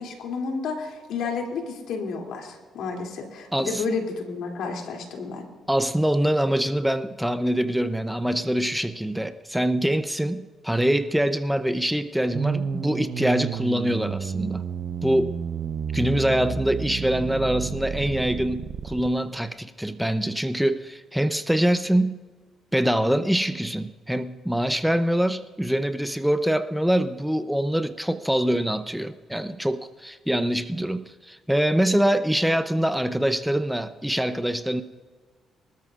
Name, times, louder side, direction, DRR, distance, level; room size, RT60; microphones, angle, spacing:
voice 1, 0.0-5.5, left 4 dB, 80° left, 1 dB, 2.8 m, -31 dB
voice 2, 3.5-3.8 5.7-14.6 15.0-15.4 15.9-22.2 22.7-34.8, right 1 dB, 5° right, 10 dB, 0.6 m, -24 dB
sound 1, 12.3-19.1, right 7 dB, 55° right, 0.7 m, -31 dB
24.5 x 13.0 x 2.5 m, 1.4 s
cardioid pair, 90°, 0 cm